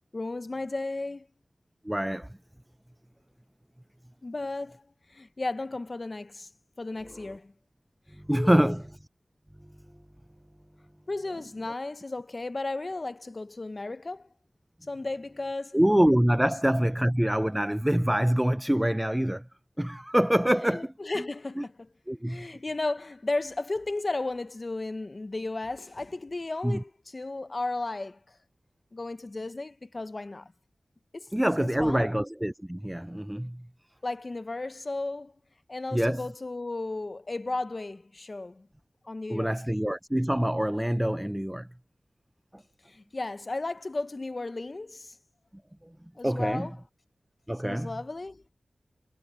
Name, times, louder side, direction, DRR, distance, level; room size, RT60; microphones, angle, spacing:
voice 1, 0.1-1.3 4.2-6.5 6.8-7.5 8.3-8.7 11.1-14.3 14.9-15.8 16.4-16.5 20.7-21.9 22.2-28.4 28.9-30.5 31.1-31.3 31.6-32.1 34.0-35.3 35.7-38.7 39.0-39.6 42.9-45.2 46.2-46.7 47.6-48.4, left 2 dB, 40° left, 0.7 m, -34 dB
voice 2, 1.8-2.4 8.2-8.8 15.7-19.5 19.8-21.2 21.6-21.7 22.1-22.5 26.6-26.8 31.3-33.7 35.9-36.3 39.3-41.7 42.5-42.6 46.2-46.7 47.5-47.9, equal, 10° right, 0.3 m, -25 dB
wide cardioid pair, 75°, 0 cm